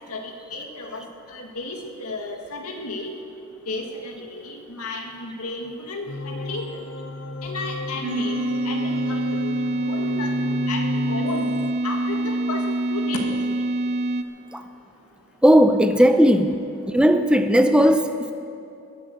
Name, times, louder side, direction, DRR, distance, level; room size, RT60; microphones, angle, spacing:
voice 1, 0.1-3.1 3.7-6.6 7.4-9.2 9.8-11.5 11.8-13.4, left 2 dB, 90° left, 2 dB, 1.9 m, -33 dB
sound 1, 6.1-11.7, left 2 dB, 55° left, 0.6 m, -33 dB
sound 2, 8.0-14.2, right 2 dB, 50° right, 0.7 m, -25 dB
voice 2, 15.4-16.6 16.9-18.3, equal, 5° right, 7 dB, 0.5 m, -16 dB
20.5 x 8.4 x 6.6 m, 2.6 s
head